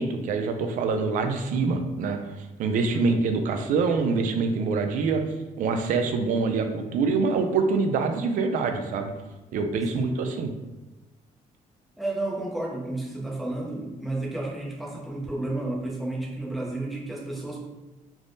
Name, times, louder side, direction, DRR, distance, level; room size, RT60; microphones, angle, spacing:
voice 1, 0.0-2.2 2.6-5.2 5.6-9.1 9.5-10.5, right 4 dB, 70° right, 6 dB, 0.4 m, -25 dB
voice 2, 2.9-3.2 9.9-10.2 12.0-17.7, right 2 dB, ahead, -4 dB, 0.5 m, -32 dB
3.4 x 2.1 x 2.6 m, 1.1 s
cardioid pair, 130°, 14 cm